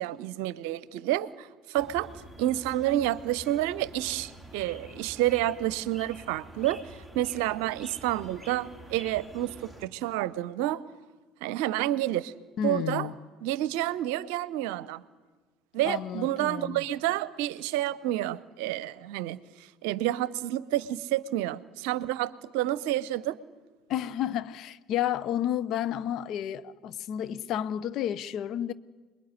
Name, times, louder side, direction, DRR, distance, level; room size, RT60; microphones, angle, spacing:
voice 1, 0.0-10.8 11.4-12.3 12.6-13.1 13.4-15.0 15.7-19.4 19.8-23.4, right 14 dB, 65° right, 0.7 m, -29 dB
sound 1, 1.8-9.9, right 1 dB, 10° left, 3.4 m, -47 dB
voice 2, 12.6-13.1 15.8-16.8 23.9-28.7, left 10 dB, 55° left, 0.8 m, -31 dB
27.0 x 21.0 x 9.7 m
figure-of-eight pair, 60°, 0 cm